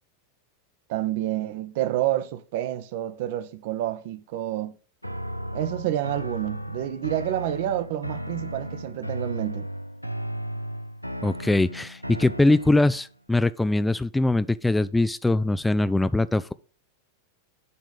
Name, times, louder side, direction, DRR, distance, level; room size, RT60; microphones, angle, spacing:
voice 1, 0.9-4.8 5.5-9.7, right 13 dB, 50° right, 0.7 m, -29 dB
sound 1, 5.0-13.1, equal, 90° right, 0.4 m, -35 dB
voice 2, 11.2-16.5, left 2 dB, 5° left, 0.3 m, -22 dB
9.4 x 3.7 x 5.3 m
figure-of-eight pair, 90°, 0 cm